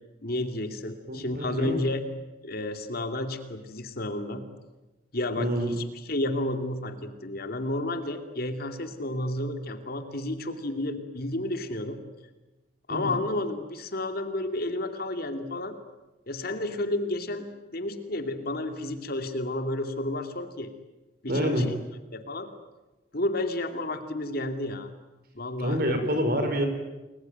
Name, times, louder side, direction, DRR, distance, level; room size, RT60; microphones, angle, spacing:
voice 1, 0.2-2.0 2.4-4.4 5.1-5.8 6.1-12.0 12.9-15.8 16.3-20.7 21.2-21.6 22.1-22.5 23.1-24.9 25.3-25.8, left 1 dB, 50° left, 7 dB, 2.6 m, -31 dB
voice 2, 1.1-1.8 5.4-5.7 12.9-13.2 21.3-21.6 25.6-26.7, equal, 50° right, 7 dB, 5.0 m, -27 dB
29.5 x 22.0 x 9.3 m, 1.1 s
head